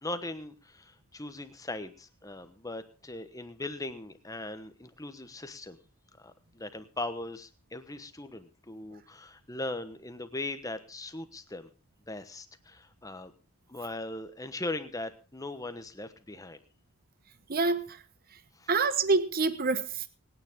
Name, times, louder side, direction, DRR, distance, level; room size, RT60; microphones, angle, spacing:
voice 1, 0.0-5.8 6.2-11.7 12.1-13.3 13.7-16.6 18.5-18.7, left 2 dB, 15° left, 10 dB, 1.1 m, -39 dB
voice 2, 17.5-18.0 18.7-20.1, right 4 dB, 40° right, 12 dB, 1.0 m, -26 dB
25.5 x 9.6 x 3.6 m, 0.32 s
head